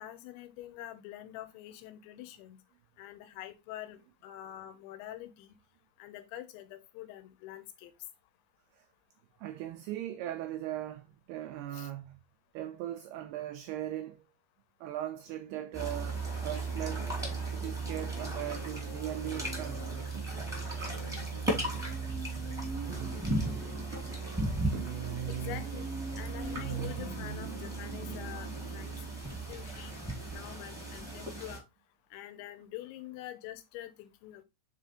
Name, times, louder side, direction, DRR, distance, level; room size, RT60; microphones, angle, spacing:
voice 1, 0.0-2.6 3.0-5.6 6.0-7.9 11.7-11.9 24.9-25.0 25.3-25.9 26.2-29.0 29.5-30.0 30.3-31.6 32.1-34.4, left 13 dB, 85° left, 3.2 m, -45 dB
voice 2, 9.4-12.2 12.5-14.2 14.8-17.1 17.5-20.0, right 12 dB, 90° right, 2.3 m, -39 dB
sound 1, 15.3-18.4 18.7-28.2, right 6 dB, 70° right, 2.2 m, -43 dB
sound 2, 15.7-31.6, right 2 dB, ahead, 0.8 m, -36 dB
6.7 x 3.8 x 4.2 m
omnidirectional pair, 5.2 m